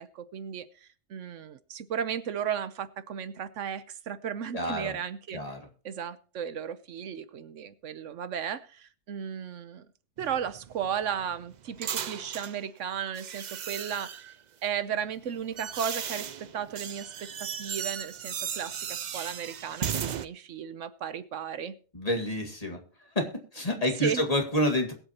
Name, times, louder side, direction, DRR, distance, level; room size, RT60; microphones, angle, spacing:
voice 1, 0.0-5.4 5.8-9.9 10.2-14.3 14.6-21.7 24.0-24.2, right 8 dB, 80° right, 13 dB, 1.1 m, -35 dB
voice 2, 4.5-4.9 5.3-5.6 21.9-22.8 23.2-24.9, left 1 dB, 30° left, 3 dB, 2.1 m, -28 dB
sound 1, 10.2-12.6 13.2-14.4 15.1-20.3, right 8 dB, 50° right, 0.5 m, -36 dB
21.5 x 8.2 x 2.9 m, 0.39 s
omnidirectional pair, 1.3 m